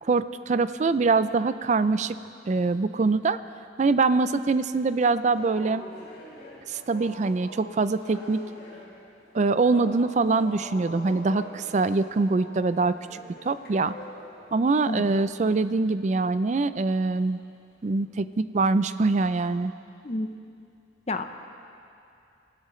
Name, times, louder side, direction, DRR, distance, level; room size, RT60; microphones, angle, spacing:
voice 1, 0.0-2.2 2.5-3.4 3.8-5.8 6.7-8.4 9.3-13.2 13.4-13.9 14.5-17.4 17.8-19.7, right 3 dB, 40° right, 13 dB, 0.3 m, -24 dB
sound 1, 5.3-15.7 16.2-16.5 17.1-17.4 17.8-18.1, left 1 dB, 60° left, 3.9 m, -45 dB
voice 2, 14.9-15.0 20.0-20.3 21.1-21.2, left 2 dB, 35° left, 7 dB, 0.6 m, -29 dB
24.0 x 14.5 x 3.2 m, 2.6 s
head